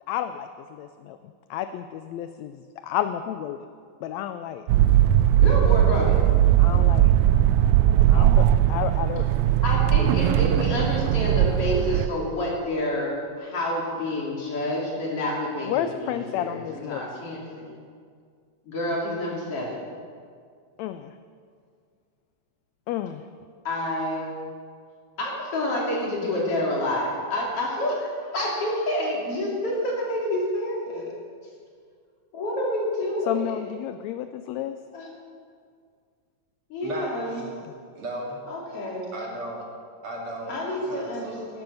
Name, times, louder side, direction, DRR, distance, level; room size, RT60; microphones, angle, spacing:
voice 1, 0.1-1.2 1.5-3.7 4.0-4.7 6.6-7.1 8.0-9.3 15.7-17.1 20.8-21.2 22.9-23.2 33.3-34.7, left 11 dB, 80° left, 10 dB, 1.6 m, -31 dB
sound 1, 4.7-12.1, right 12 dB, 80° right, 1.7 m, -19 dB
voice 2, 5.3-6.2 9.6-17.7 18.7-19.9 23.7-24.3 25.2-31.1 32.3-33.6 34.9-35.1 36.7-37.4 38.5-39.1 40.5-41.6, left 1 dB, 50° left, -3 dB, 3.5 m, -28 dB
voice 3, 36.8-37.5 37.9-38.4 39.1-39.7 40.0-41.5, right 1 dB, 50° right, -2 dB, 2.9 m, -35 dB
12.0 x 12.0 x 7.0 m, 2.1 s
omnidirectional pair, 3.4 m